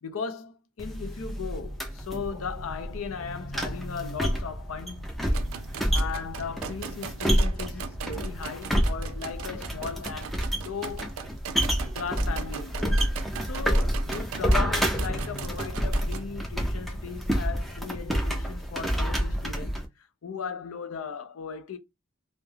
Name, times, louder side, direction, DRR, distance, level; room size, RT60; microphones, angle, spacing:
voice 1, 0.0-5.4 5.9-11.1 11.9-13.1 13.4-21.8, left 6 dB, 90° left, 0.5 m, -37 dB
sound 1, 0.8-19.9, equal, ahead, 0.4 m, -29 dB
sound 2, 5.3-16.2, right 7 dB, 80° right, 0.4 m, -40 dB
2.3 x 2.1 x 3.0 m
head